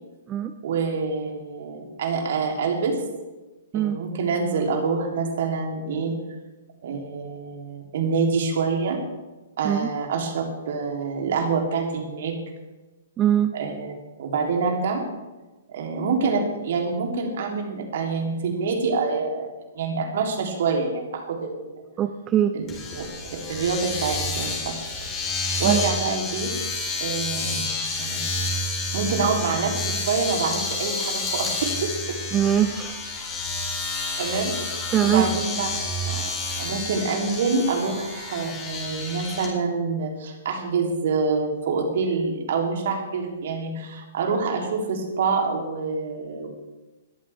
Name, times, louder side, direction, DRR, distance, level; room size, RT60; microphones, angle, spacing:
voice 1, 0.6-3.0 3.7-6.1 6.8-9.0 9.6-12.3 13.5-13.9 14.2-15.0 15.7-21.8 22.5-23.0 23.3-24.9 25.6-26.5 27.0-27.6 28.0-28.3 28.9-32.2 34.2-34.6 35.0-35.7 36.1-36.3 36.5-46.5, right 4 dB, 50° right, 2 dB, 3.3 m, -26 dB
voice 2, 13.2-13.5 22.0-22.6 25.6-25.8 32.3-33.0 34.9-35.3, right 10 dB, 20° right, 9 dB, 0.7 m, -22 dB
Domestic sounds home sounds, 22.7-39.5, left 2 dB, 20° left, 4.1 m, -29 dB
21.0 x 14.0 x 3.6 m, 1.1 s
figure-of-eight pair, 115°, 0 cm